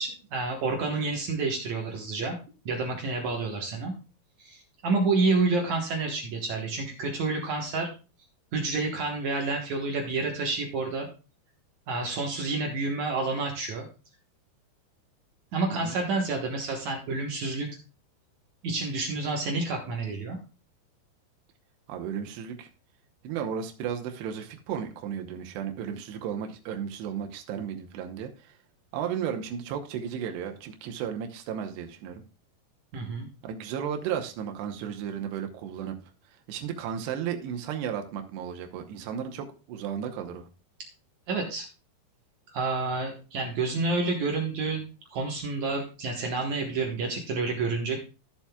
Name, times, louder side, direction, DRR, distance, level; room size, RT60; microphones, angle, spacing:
voice 1, 0.0-2.4 2.7-3.9 4.4-7.9 8.5-11.1 11.9-13.9 15.5-17.7 18.6-20.4 32.9-33.3 41.3-41.7 42.5-48.0, right 3 dB, 65° right, 1 dB, 2.0 m, -29 dB
voice 2, 21.9-22.7 23.2-28.6 28.9-32.2 33.4-36.0 36.5-40.5, right 8 dB, 90° right, 5 dB, 3.1 m, -34 dB
14.0 x 7.2 x 2.3 m, 0.33 s
omnidirectional pair, 4.7 m